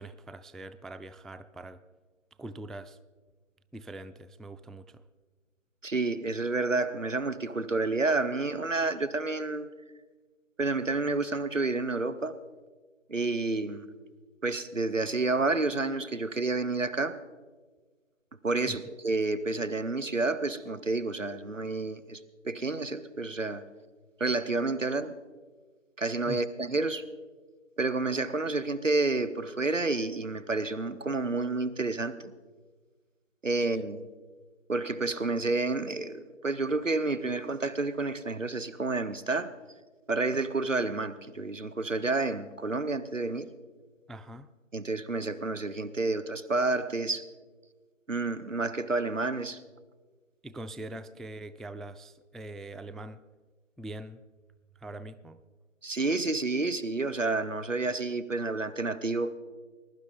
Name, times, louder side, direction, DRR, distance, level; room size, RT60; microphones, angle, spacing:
voice 1, 0.0-1.8 2.4-3.0 3.7-5.0 18.7-18.8 26.3-26.4 44.1-44.5 50.4-53.2 53.8-54.2 54.8-55.4, right 1 dB, ahead, 0.3 m, -43 dB
voice 2, 5.8-9.7 10.6-12.4 13.1-13.9 14.4-17.2 18.4-22.2 22.4-23.6 24.2-25.1 26.0-27.0 27.8-32.1 33.4-34.1 34.7-39.5 40.1-43.5 44.7-47.3 48.1-49.6 55.8-59.4, right 3 dB, 75° right, 1.0 m, -29 dB
21.0 x 11.5 x 3.8 m
figure-of-eight pair, 180°, 39 cm